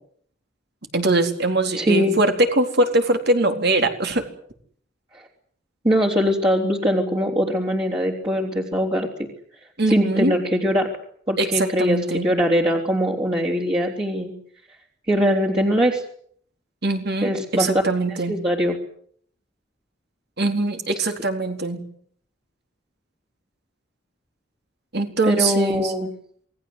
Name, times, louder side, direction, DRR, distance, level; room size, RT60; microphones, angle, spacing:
voice 1, 0.9-4.2 9.8-10.3 11.4-12.3 16.8-18.4 20.4-21.8 24.9-25.9, right 2 dB, 55° right, 5 dB, 4.1 m, -22 dB
voice 2, 1.8-2.1 5.1-5.2 5.8-9.1 9.9-10.9 11.3-14.3 15.1-16.0 17.2-17.7 18.3-18.8 25.2-26.1, equal, 25° right, -3 dB, 3.5 m, -21 dB
28.0 x 20.0 x 8.0 m, 0.62 s
head